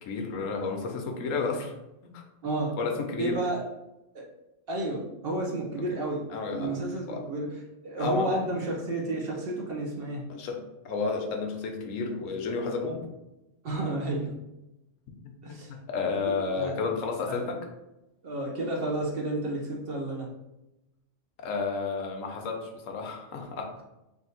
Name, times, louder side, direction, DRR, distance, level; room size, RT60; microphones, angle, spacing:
voice 1, 0.0-1.7 2.0-2.2 2.8-3.4 6.3-6.7 7.1-7.2 7.9-8.4 10.3-13.1 15.2-17.6 21.4-23.7, left 4 dB, 80° left, 3 dB, 1.1 m, -32 dB
voice 2, 2.4-2.8 3.2-3.7 4.1-4.3 4.7-10.3 13.6-14.4 15.4-15.7 16.3-16.8 17.3-17.5 18.2-20.3, right 1 dB, 55° right, -1 dB, 0.8 m, -31 dB
3.5 x 2.5 x 4.1 m, 0.95 s
omnidirectional pair, 1.3 m